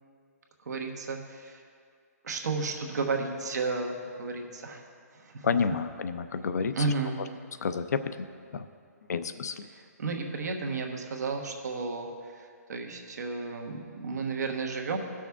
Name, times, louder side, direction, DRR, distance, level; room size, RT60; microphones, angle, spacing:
voice 1, 0.6-1.6 2.2-4.8 5.1-5.5 6.7-7.2 9.7-15.0, right 3 dB, 75° right, 2 dB, 1.3 m, -33 dB
voice 2, 5.4-6.8 7.6-8.6 9.1-9.6, left 5 dB, 75° left, 11 dB, 0.5 m, -30 dB
16.5 x 6.2 x 3.6 m, 2.2 s
hypercardioid pair, 170°, 9 cm